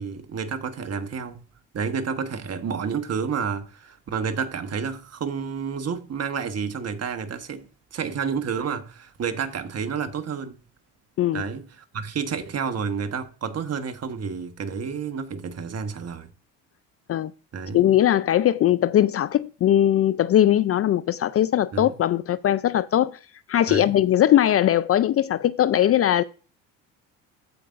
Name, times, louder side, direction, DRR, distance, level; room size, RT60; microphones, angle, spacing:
voice 1, 0.0-1.5 1.7-10.6 11.3-16.3 17.5-17.8 21.7-21.9 23.7-23.9, right 6 dB, 40° right, 1.3 m, -30 dB
voice 2, 17.7-23.2 23.5-26.2, left 11 dB, 40° left, 0.4 m, -20 dB
15.0 x 5.1 x 2.5 m
supercardioid pair, 80°, 38 cm